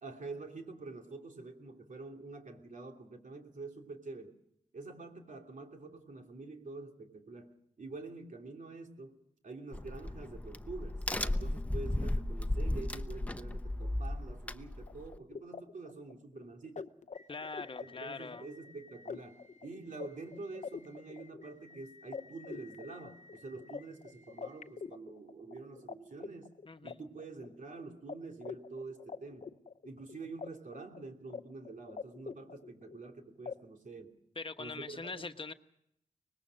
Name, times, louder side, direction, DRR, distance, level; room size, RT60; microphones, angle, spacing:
voice 1, 0.0-4.3 4.7-9.2 9.4-16.9 17.8-26.5 26.8-29.5 29.8-34.2 34.6-35.2, right 3 dB, 75° right, 2 dB, 3.0 m, -47 dB
Crack, 9.7-15.2, left 1 dB, 10° left, 0.8 m, -35 dB
sound 1, 14.8-25.9 26.2-27.7 28.1-28.2 28.4-30.5 30.7-31.4 31.7-33.1 33.5-33.6, left 5 dB, 65° left, 0.8 m, -46 dB
voice 2, 17.3-18.5 26.7-26.9 34.3-35.5, left 3 dB, 40° left, 8 dB, 1.1 m, -42 dB
24.0 x 20.0 x 6.4 m, 0.75 s
wide cardioid pair, 75°, 13 cm